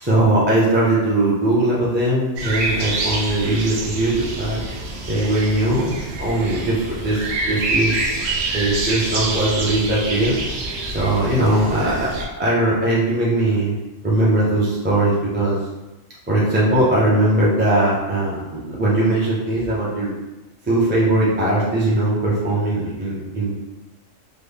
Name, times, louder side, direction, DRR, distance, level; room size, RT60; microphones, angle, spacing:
voice 1, 0.0-4.6 5.1-8.2 8.5-10.3 10.9-12.1 12.4-13.7 14.0-15.6 16.3-20.1 20.7-23.5, right 1 dB, 15° right, -7 dB, 0.4 m, -20 dB
sound 1, 2.4-12.3, right 2 dB, 60° right, 0.8 m, -26 dB
3.4 x 2.3 x 3.5 m, 1.0 s
omnidirectional pair, 1.4 m